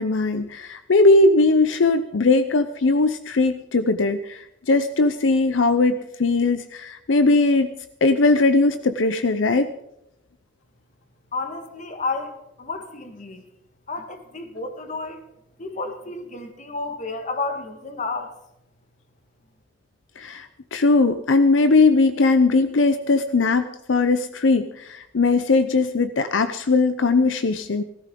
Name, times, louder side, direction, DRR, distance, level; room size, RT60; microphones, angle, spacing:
voice 1, 0.0-7.7 8.0-9.7 20.2-27.8, left 3 dB, 80° left, 11 dB, 0.6 m, -19 dB
voice 2, 11.3-13.4 13.9-15.2 15.6-18.3, left 3 dB, 40° left, 6 dB, 1.7 m, -31 dB
17.0 x 15.0 x 3.8 m, 0.82 s
head